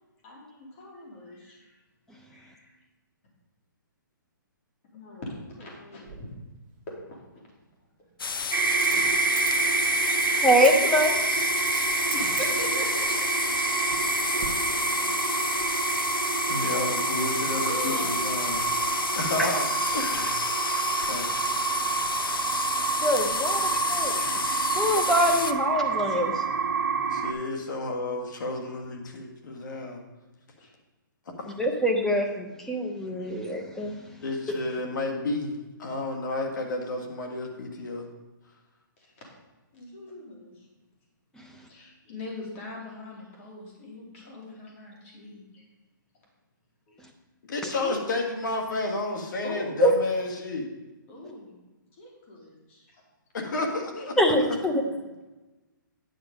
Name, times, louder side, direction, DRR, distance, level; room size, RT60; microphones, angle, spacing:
voice 1, 0.2-1.7 2.3-2.8 4.9-6.3 6.9-7.2 8.4-8.5 8.9-9.4 10.1-10.4 12.1-13.5 14.3-15.3 17.5-19.2 20.6-20.9 21.8-22.4 23.5-23.6 23.9-24.3 30.6-30.7 39.0-39.2 39.7-40.6 41.7-45.6 46.9-47.0 47.8-48.0 49.4-49.9 51.1-51.6 52.0-53.0 54.7-55.1, left 1 dB, 35° left, -2 dB, 3.0 m, -41 dB
Coin (dropping), 6.0-6.2 8.7-10.7 11.0-11.2 11.6-11.9 12.1-12.9 13.5-14.1 14.4-14.5, right 8 dB, 20° right, 1.2 m, -39 dB
sound 1, 8.2-25.5, left 5 dB, 90° left, 0.6 m, -31 dB
sound 2, 8.5-27.3, right 5 dB, 85° right, 1.4 m, -28 dB
voice 2, 10.4-11.5 19.4-19.5 23.0-24.2 24.8-26.4 31.6-33.9 49.8-49.9 54.2-54.8, equal, 5° left, 2 dB, 0.8 m, -24 dB
voice 3, 16.5-18.6 19.2-19.7 19.9-20.4 21.1-21.4 27.1-30.0 31.4-31.6 34.2-38.1 47.5-50.7 53.3-54.2, left 2 dB, 60° left, 3 dB, 1.9 m, -31 dB
9.9 x 5.8 x 5.2 m, 1.1 s
hypercardioid pair, 155°, 11 cm